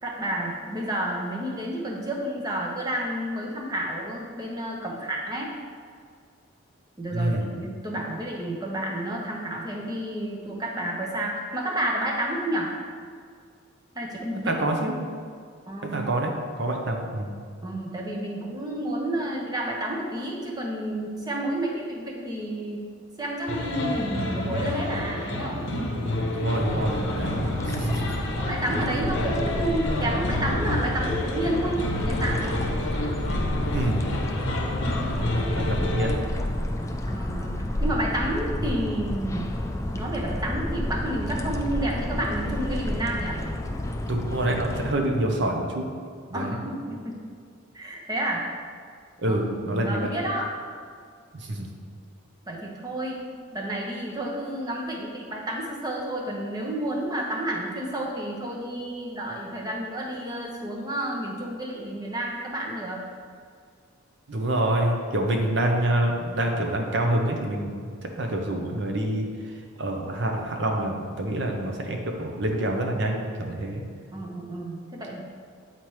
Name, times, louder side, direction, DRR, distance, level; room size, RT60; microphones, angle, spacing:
voice 1, 0.0-5.5 7.0-12.7 13.9-14.6 15.7-16.1 17.6-22.8 23.2-25.7 27.8-28.1 28.5-32.6 35.2-35.7 37.1-39.5 39.9-43.4 46.3-47.1 47.7-48.5 49.3-50.5 52.5-53.2 53.5-63.0 74.1-75.2, right 1 dB, 20° right, -1 dB, 0.8 m, -30 dB
voice 2, 7.1-7.5 14.5-14.9 15.8-17.3 26.0-28.1 33.7-34.0 35.6-36.1 44.0-45.8 46.3-46.6 49.2-50.1 51.3-51.7 64.3-67.9 68.2-69.2 69.8-73.8, right 1 dB, 60° right, 2 dB, 0.7 m, -27 dB
sound 1, 23.5-36.2, left 1 dB, 60° left, 0.8 m, -29 dB
sound 2, 26.6-44.9, left 1 dB, 15° left, 0.3 m, -30 dB
8.6 x 4.3 x 3.1 m, 2.1 s
head